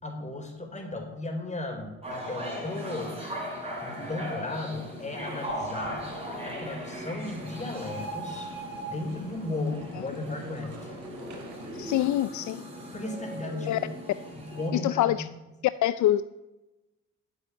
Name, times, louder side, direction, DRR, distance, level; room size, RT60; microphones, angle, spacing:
voice 1, 0.0-3.1 3.8-6.1 6.4-8.5 8.8-10.9 12.9-13.8 14.3-15.2, left 2 dB, 25° left, 2 dB, 4.1 m, -35 dB
sound 1, 2.0-14.7, equal, 20° right, 5.4 m, -38 dB
sound 2, 5.5-12.1, right 3 dB, 75° right, 3.4 m, -48 dB
voice 2, 11.8-12.6 13.7-13.8 14.7-15.3 15.8-16.2, left 13 dB, 70° left, 14 dB, 0.5 m, -25 dB
11.0 x 7.9 x 9.9 m, 1.0 s
cardioid pair, 90°, 30 cm